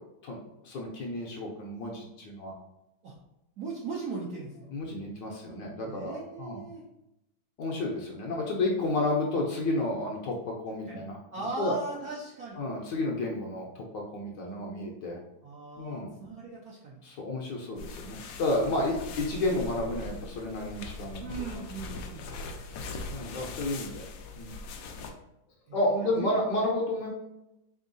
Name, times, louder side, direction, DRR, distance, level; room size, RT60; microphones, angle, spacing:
voice 1, 0.0-2.5 4.7-6.6 7.6-11.7 12.6-15.2 15.8-16.1 17.0-21.2 21.5-21.7 23.1-24.1 24.4-24.5 25.7-27.1, left 2 dB, 70° left, -1 dB, 1.1 m, -31 dB
voice 2, 3.6-4.7 5.9-6.8 10.9-11.0 11.3-12.7 15.4-17.0 21.2-22.3 23.7-23.8 25.7-26.3, right 3 dB, 70° right, -5 dB, 0.9 m, -39 dB
sound 1, 17.8-25.1, left 3 dB, 85° left, 0.8 m, -41 dB
3.9 x 3.6 x 2.6 m, 0.90 s
omnidirectional pair, 2.3 m